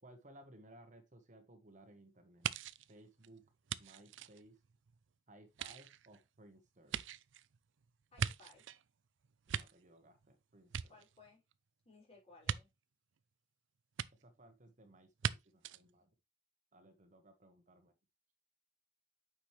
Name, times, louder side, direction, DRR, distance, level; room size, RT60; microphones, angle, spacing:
voice 1, 0.0-2.5 2.9-3.4 3.8-4.6 5.3-7.0 9.5-10.9 14.2-16.1 16.7-17.9, right 1 dB, 40° right, 1.2 m, -60 dB
sound 1, 2.4-5.0 5.5-8.8 9.2-10.3 10.6-11.5 12.4-12.6 14.0-14.1 15.2-15.3 15.6-15.8, right 8 dB, 90° right, 0.4 m, -41 dB
voice 2, 8.1-8.7 10.9-11.4 11.8-12.7, left 3 dB, 35° left, 5.4 m, -61 dB
8.9 x 6.1 x 3.2 m
head